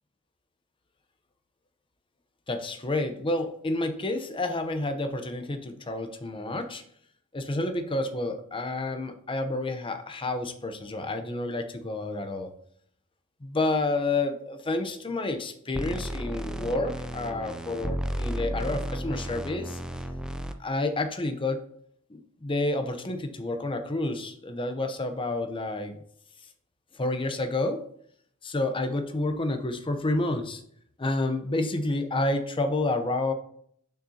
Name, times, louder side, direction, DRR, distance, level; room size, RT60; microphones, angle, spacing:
voice 1, 2.5-6.8 7.3-12.5 13.4-19.8 20.6-21.6 22.1-26.0 26.9-27.8 28.4-30.6 31.0-33.3, left 2 dB, 25° left, 7 dB, 0.8 m, -29 dB
sound 1, 15.7-20.5, right 1 dB, 5° right, 0.4 m, -33 dB
6.8 x 6.3 x 2.8 m, 0.64 s
head